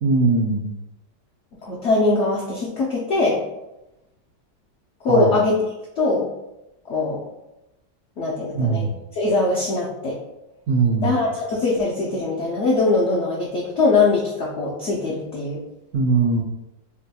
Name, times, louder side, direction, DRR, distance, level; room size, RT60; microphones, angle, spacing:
voice 1, 0.0-0.7 5.1-5.4 8.5-8.9 10.7-11.1 15.9-16.4, right 4 dB, 75° right, -3 dB, 0.7 m, -20 dB
voice 2, 1.6-3.4 5.0-5.6 6.0-6.3 6.9-7.2 8.2-8.9 9.1-10.2 11.0-15.6, left 3 dB, 75° left, -5 dB, 0.6 m, -21 dB
4.0 x 2.2 x 2.8 m, 0.94 s
omnidirectional pair, 1.9 m